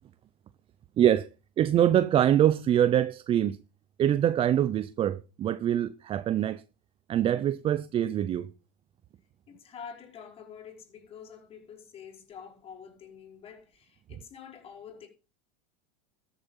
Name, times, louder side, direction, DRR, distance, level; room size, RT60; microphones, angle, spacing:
voice 1, 1.0-1.3 1.6-3.6 4.0-6.6 7.1-8.5, right 10 dB, 30° right, 0.6 m, -24 dB
voice 2, 9.5-15.1, left 7 dB, 30° left, 5.1 m, -47 dB
13.5 x 7.9 x 5.6 m
supercardioid pair, 125°, 19 cm